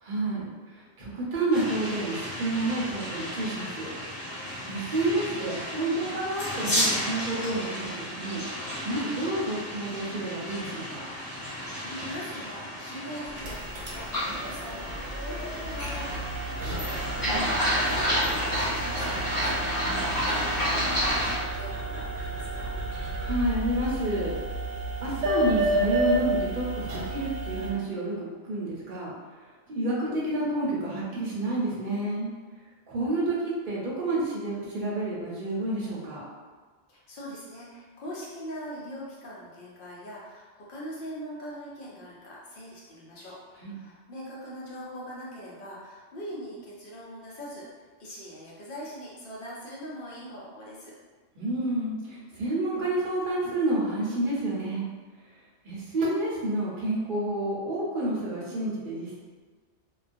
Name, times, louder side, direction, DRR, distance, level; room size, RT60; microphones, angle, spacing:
voice 1, 0.1-0.5 1.0-3.9 4.7-8.4 8.8-11.0 17.3-17.7 19.8-20.3 23.2-24.3 25.0-29.1 29.7-32.3 32.9-36.3 43.6-43.7 51.4-54.8 55.6-59.2, right 1 dB, 50° right, -6 dB, 0.7 m, -29 dB
sound 1, 1.5-21.4, equal, 35° left, 0.3 m, -31 dB
voice 2, 11.5-17.0 17.5-19.6 20.0-22.7 36.9-47.6 48.0-50.9, equal, 55° left, -6 dB, 0.7 m, -42 dB
sound 2, 13.2-27.7, right 2 dB, 85° right, 1.0 m, -32 dB
2.3 x 2.2 x 2.5 m, 1.4 s
omnidirectional pair, 1.3 m